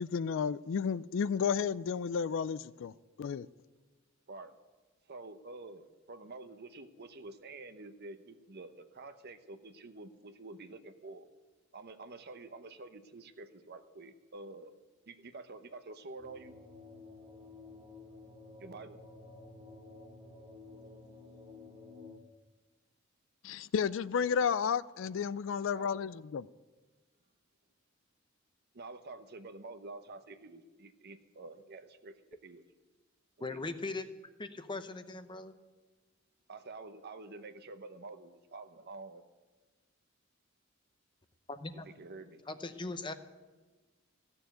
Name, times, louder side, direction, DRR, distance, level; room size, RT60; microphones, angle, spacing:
voice 1, 0.0-2.9 3.2-3.5 23.4-26.4, left 6 dB, 65° left, 0.4 m, -32 dB
voice 2, 5.1-11.3 11.7-14.7 15.1-16.6 18.6-19.0 25.8-26.0 28.7-32.2 32.4-32.6 33.4-33.6 36.5-39.2 41.7-42.4, right 3 dB, 55° right, 0.9 m, -48 dB
sound 1, 16.2-22.2, left 3 dB, 20° right, 1.9 m, -52 dB
voice 3, 33.4-34.1 34.4-35.5 41.5-41.9 42.5-43.1, left 3 dB, 25° left, 0.7 m, -39 dB
15.0 x 6.9 x 9.1 m
head